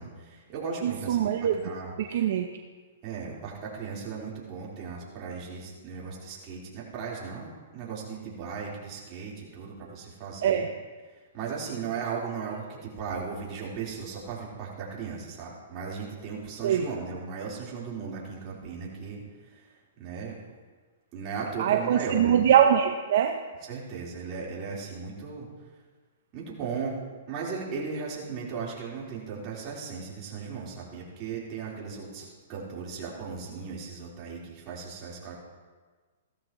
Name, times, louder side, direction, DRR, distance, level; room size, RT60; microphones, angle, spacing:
voice 1, 0.0-2.3 3.0-10.7 11.3-20.4 21.1-22.4 23.6-25.5 26.3-27.0 27.3-35.3, right 5 dB, 35° right, -5 dB, 4.1 m, -37 dB
voice 2, 0.8-1.6 2.1-2.5 10.4-10.7 16.6-16.9 21.6-23.4, right 9 dB, 65° right, 5 dB, 0.7 m, -23 dB
16.5 x 13.5 x 3.1 m, 1.4 s
hypercardioid pair, 140°, 0 cm